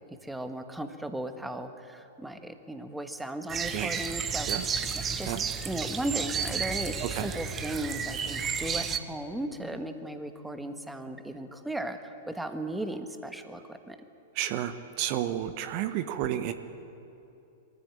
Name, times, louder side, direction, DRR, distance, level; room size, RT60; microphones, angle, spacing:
voice 1, 0.2-4.5 5.2-5.3 5.6-7.0 7.2-14.0, right 1 dB, 5° right, 7 dB, 1.5 m, -36 dB
sound 1, 3.5-9.0, right 6 dB, 25° right, 1.2 m, -32 dB
sound 2, 5.1-11.1, left 4 dB, 45° left, 3.0 m, -52 dB
voice 2, 14.3-16.5, right 12 dB, 45° right, 9 dB, 1.1 m, -31 dB
23.0 x 15.5 x 8.8 m, 2.8 s
figure-of-eight pair, 100°, 0 cm